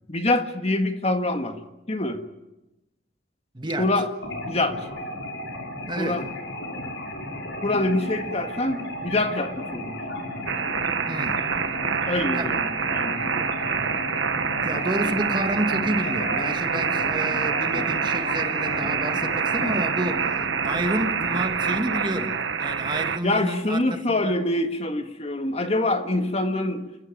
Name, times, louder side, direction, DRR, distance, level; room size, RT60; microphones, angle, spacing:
voice 1, 0.1-1.6 1.9-2.2 3.8-4.1 4.5-4.8 6.0-6.2 7.6-10.0 12.1-13.5 23.2-27.0, left 2 dB, 35° left, 1.7 m, -25 dB
voice 2, 3.5-3.9 5.9-6.3 11.1-11.4 12.3-12.5 14.6-20.4 20.6-24.3, right 1 dB, 25° right, 1.8 m, -30 dB
sound 1, 4.2-22.3, left 1 dB, 75° left, 6.2 m, -34 dB
sound 2, 10.5-23.2, right 6 dB, 80° right, 1.4 m, -26 dB
29.5 x 15.0 x 9.1 m
head